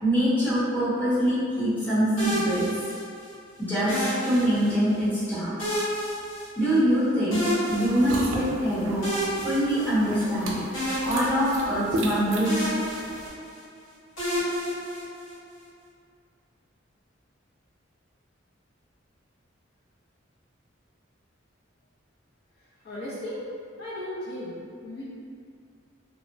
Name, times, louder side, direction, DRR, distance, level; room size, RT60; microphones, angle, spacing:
voice 1, 0.0-2.7 3.6-5.5 6.6-9.1 9.4-10.6 11.0-12.7, equal, 10° left, -13 dB, 0.9 m, -24 dB
sound 1, 2.2-3.3 3.9-5.0 5.6-7.0 7.3-8.5 9.0-10.4 10.7-12.1 12.4-13.6 14.2-15.5, equal, 75° left, 1.1 m, -31 dB
sound 2, 7.7-13.3, right 1 dB, 90° right, 0.4 m, -35 dB
voice 2, 22.6-23.4 23.8-24.6 24.8-25.0, left 1 dB, 55° left, -9 dB, 0.5 m, -36 dB
2.9 x 2.0 x 2.6 m, 2.3 s
head